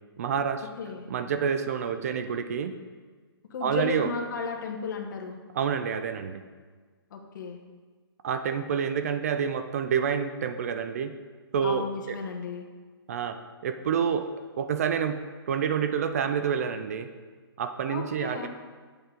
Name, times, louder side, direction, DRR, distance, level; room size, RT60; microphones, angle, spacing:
voice 1, 0.2-0.7 1.1-2.7 3.6-4.1 5.5-6.4 8.2-11.1 11.5-12.2 13.1-14.3 14.6-15.2 15.5-17.1 17.6-18.5, right 7 dB, 35° right, 9 dB, 0.4 m, -28 dB
voice 2, 3.5-5.4 7.1-7.6 11.6-12.6 17.9-18.5, left 5 dB, 50° left, 3 dB, 1.0 m, -34 dB
8.0 x 6.7 x 3.7 m, 1.5 s
hypercardioid pair, 160°, 13 cm